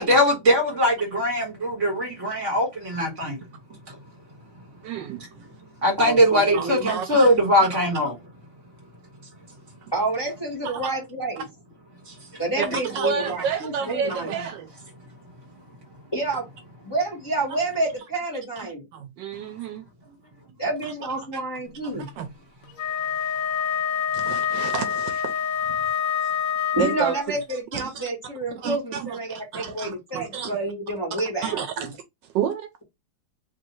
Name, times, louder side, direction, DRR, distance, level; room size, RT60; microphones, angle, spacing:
voice 1, 0.0-3.4 5.8-8.1 12.1-12.2, equal, 40° right, 1.9 m, -21 dB
voice 2, 4.8-5.2 6.5-7.2 10.6-10.9 12.6-14.7 18.6-19.9 21.8-22.3 24.1-25.4 25.7-25.9 26.2-26.3 26.7-28.0 28.6-30.6 31.4-32.7, right 7 dB, 80° right, 1.2 m, -30 dB
voice 3, 6.0-6.9 9.9-11.4 12.4-14.3 16.1-16.5 16.8-18.8 20.6-22.1 26.7-31.6, right 2 dB, 15° left, 1.3 m, -29 dB
Wind instrument woodwind instrument, 22.7-27.3, left 8 dB, 75° left, 0.7 m, -26 dB
3.1 x 2.7 x 4.2 m
omnidirectional pair, 2.0 m